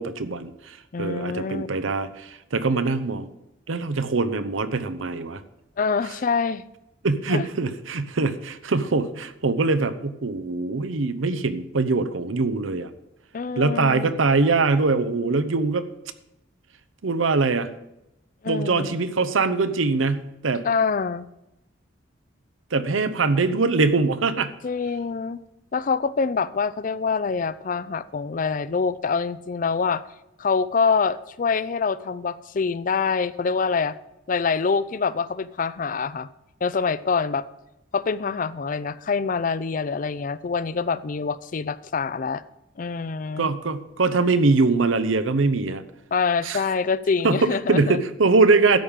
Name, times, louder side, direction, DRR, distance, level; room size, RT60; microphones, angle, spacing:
voice 1, 0.0-3.3 3.7-5.4 7.0-12.9 13.6-15.9 17.0-17.7 18.5-20.6 22.7-24.5 43.4-45.8 46.4-46.6 47.2-48.8, right 3 dB, 80° right, 12 dB, 0.8 m, -22 dB
voice 2, 0.9-1.7 5.8-6.6 7.3-7.4 13.3-14.1 18.4-19.0 20.6-21.3 24.6-25.4 25.7-30.0 30.4-34.0 34.3-36.3 36.6-37.4 37.9-42.4 42.8-43.5 46.1-48.0, left 5 dB, 40° left, 17 dB, 0.4 m, -25 dB
13.0 x 5.2 x 7.3 m, 0.90 s
head